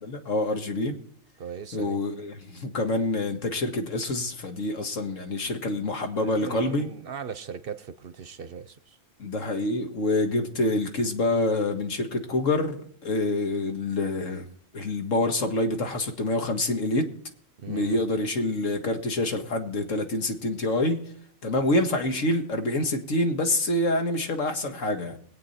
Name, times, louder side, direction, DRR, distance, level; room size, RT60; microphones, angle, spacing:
voice 1, 0.0-0.9 1.7-6.9 9.2-14.5 14.7-17.1 17.7-21.0 21.4-25.2, left 2 dB, 85° left, 2.0 m, -26 dB
voice 2, 1.4-2.0 6.1-9.0 17.6-18.0, right 6 dB, 55° right, 0.8 m, -38 dB
21.5 x 8.6 x 4.2 m
omnidirectional pair, 1.3 m